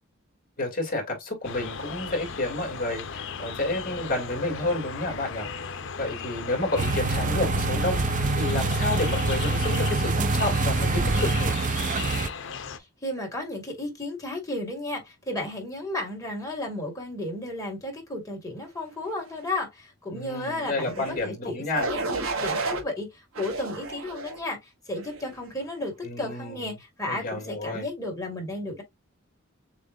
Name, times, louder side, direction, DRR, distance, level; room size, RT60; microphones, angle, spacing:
voice 1, 0.6-5.5 6.0-8.0 8.4-11.6 20.1-21.9 26.0-26.7 27.1-27.9, left 2 dB, 45° left, 2.4 m, -30 dB
sound 1, 1.4-12.8, left 6 dB, 65° left, 0.7 m, -37 dB
sound 2, 6.8-12.3, right 3 dB, 40° right, 0.5 m, -25 dB
voice 2, 13.0-28.8, left 1 dB, 15° left, 2.1 m, -33 dB
sound 3, 20.8-21.2 21.7-22.8 23.3-24.4 25.0-25.3, right 3 dB, 85° right, 1.3 m, -31 dB
7.0 x 2.5 x 2.6 m
head